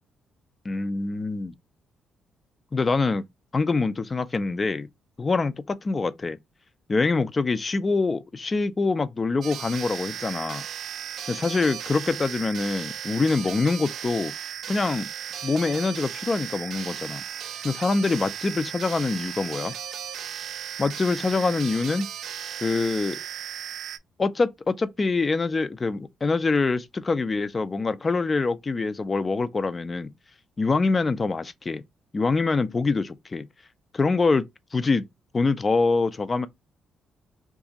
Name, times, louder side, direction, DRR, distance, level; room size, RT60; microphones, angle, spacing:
voice 1, 0.6-1.5 2.7-3.2 3.5-4.9 5.2-6.4 6.9-10.6 11.3-14.3 14.7-15.1 15.4-17.2 17.6-19.7 20.8-22.1 22.6-23.2 24.2-30.1 30.6-31.8 32.1-33.5 33.9-34.4 34.7-35.0 35.3-36.5, left 3 dB, 30° left, 0.4 m, -25 dB
sound 1, 9.4-24.0, right 9 dB, 70° right, 0.4 m, -36 dB
2.7 x 2.4 x 3.9 m
cardioid pair, 90°, 0 cm